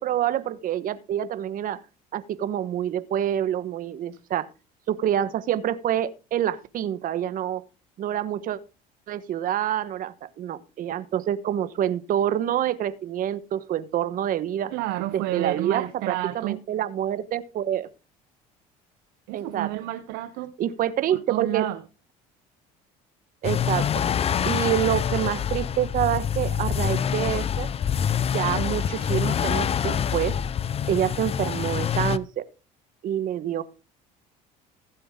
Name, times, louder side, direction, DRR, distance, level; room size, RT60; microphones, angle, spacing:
voice 1, 0.0-1.8 2.1-4.5 4.9-7.6 8.0-8.6 9.1-14.7 15.1-17.9 19.3-19.7 20.6-21.7 23.4-24.0 24.4-27.7 28.3-30.4 30.9-32.5 33.0-33.6, right 11 dB, 55° right, 1.2 m, -27 dB
voice 2, 14.7-16.6 19.3-20.6 21.1-21.8, right 15 dB, 75° right, 0.8 m, -30 dB
sound 1, 23.4-32.2, left 8 dB, 35° left, 0.6 m, -26 dB
15.5 x 7.8 x 3.7 m
supercardioid pair, 85°, 17 cm